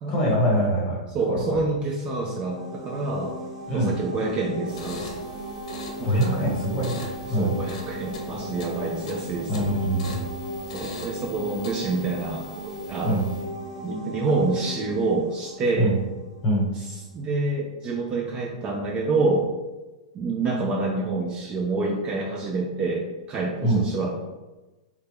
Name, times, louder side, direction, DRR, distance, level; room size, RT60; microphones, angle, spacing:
voice 1, 0.1-1.0 1.3-1.6 3.7-3.9 6.0-7.6 9.5-10.2 13.0-13.3 15.8-15.9 16.4-16.7 23.6-23.8, equal, 25° left, -4 dB, 1.2 m, -23 dB
voice 2, 1.1-3.4 3.7-5.2 6.0-6.4 7.4-9.7 10.7-13.2 13.8-15.9 16.8-16.9 17.1-19.5 20.1-24.1, right 3 dB, 25° right, 0 dB, 0.4 m, -27 dB
sound 1, 1.9-16.6, right 1 dB, 70° right, 1.3 m, -37 dB
sound 2, 4.7-13.6, left 2 dB, 65° left, 0.7 m, -42 dB
3.3 x 2.3 x 3.4 m, 1.1 s
supercardioid pair, 155°, 4 cm